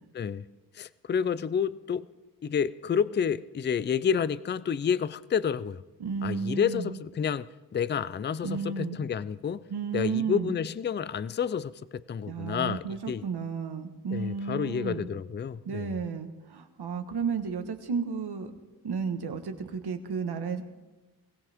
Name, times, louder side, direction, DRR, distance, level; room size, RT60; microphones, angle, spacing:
voice 1, 0.1-0.4 0.7-2.1 2.4-5.8 6.2-9.6 9.9-13.2 14.1-15.9, left 7 dB, 30° left, 18 dB, 0.4 m, -29 dB
voice 2, 6.0-7.0 8.4-9.0 9.7-10.6 12.3-15.1 15.6-18.5 18.8-20.6, right 5 dB, 70° right, 7 dB, 1.4 m, -32 dB
20.5 x 17.0 x 3.6 m, 1.1 s
wide cardioid pair, 115°, 40 cm